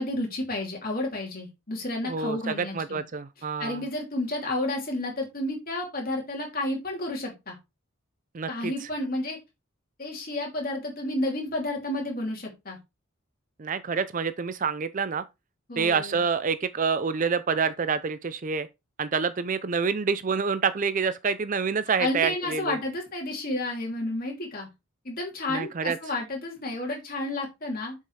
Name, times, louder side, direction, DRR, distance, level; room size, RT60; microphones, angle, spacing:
voice 1, 0.0-3.0 3.6-7.5 8.5-9.4 10.0-12.8 15.7-16.2 22.0-24.7 25.0-28.0, left 1 dB, 45° left, 2.8 m, -31 dB
voice 2, 2.0-3.9 8.3-8.9 13.6-15.2 15.8-18.7 19.0-22.8 25.5-26.0, right 5 dB, 40° right, 0.5 m, -27 dB
7.4 x 5.5 x 3.2 m
head